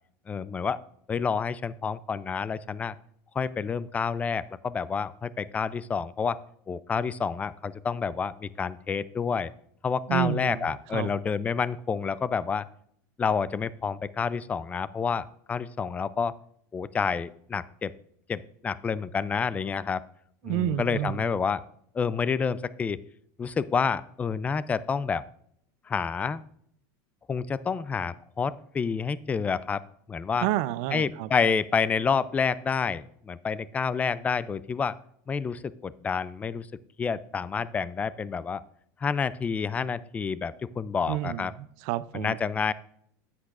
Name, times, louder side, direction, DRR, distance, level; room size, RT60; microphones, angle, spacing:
voice 1, 0.3-0.8 1.1-2.9 3.4-6.4 6.7-9.5 9.8-12.7 13.2-16.3 16.7-17.9 18.3-20.0 20.5-21.6 21.9-23.0 23.4-25.2 25.9-26.4 27.3-29.8 30.1-30.5 30.9-35.0 35.3-36.7 37.0-38.6 39.0-41.5 42.1-42.7, left 6 dB, 15° left, 18 dB, 0.3 m, -29 dB
voice 2, 10.1-11.1 20.4-21.3 30.4-31.3 41.1-42.4, right 13 dB, 60° right, 17 dB, 0.5 m, -30 dB
10.0 x 8.4 x 2.5 m, 0.69 s
supercardioid pair, 130°, 10 cm